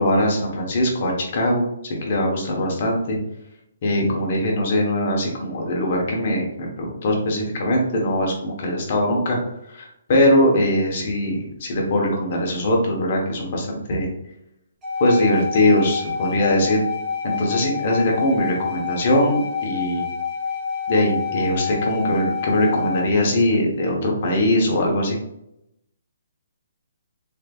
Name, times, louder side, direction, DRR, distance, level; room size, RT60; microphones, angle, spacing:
voice 1, 0.0-1.6 2.0-3.2 3.8-9.4 9.7-14.1 15.0-16.8 17.2-20.0 20.9-25.2, left 1 dB, 50° left, 0 dB, 1.2 m, -21 dB
sound 1, 14.8-23.1, left 6 dB, 15° right, 0.9 m, -28 dB
3.5 x 3.2 x 2.5 m, 0.82 s
hypercardioid pair, 150°, 0 cm